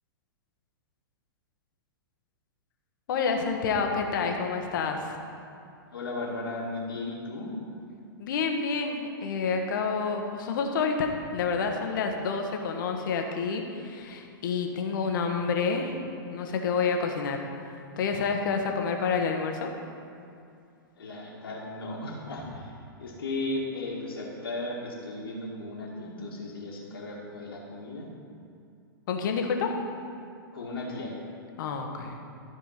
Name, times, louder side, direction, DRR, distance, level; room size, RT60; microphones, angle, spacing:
voice 1, 3.1-5.1 8.2-16.0 16.3-17.5 18.0-19.7 29.1-29.7 31.6-32.2, left 5 dB, 60° left, 3 dB, 1.3 m, -28 dB
voice 2, 5.9-7.5 21.0-22.7 23.0-28.1 30.5-31.1, left 2 dB, 85° left, -5 dB, 2.0 m, -35 dB
13.5 x 4.5 x 5.7 m, 2.5 s
hypercardioid pair, 120°, 12 cm